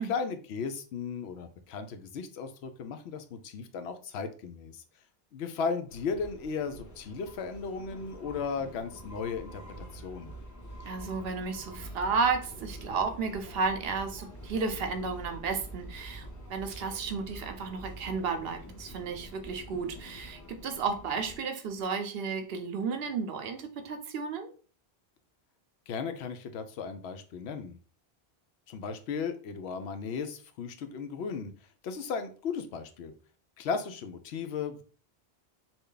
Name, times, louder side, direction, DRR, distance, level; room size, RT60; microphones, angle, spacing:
voice 1, 0.0-4.8 5.3-10.3 25.9-27.8 28.7-31.5 31.8-33.1 33.6-34.8, left 5 dB, 85° left, 8 dB, 0.8 m, -36 dB
sound 1, 5.9-21.4, right 1 dB, 20° left, 0.6 m, -46 dB
voice 2, 10.8-24.5, right 5 dB, 70° right, 7 dB, 0.8 m, -33 dB
3.3 x 2.3 x 3.8 m, 0.39 s
omnidirectional pair, 1.1 m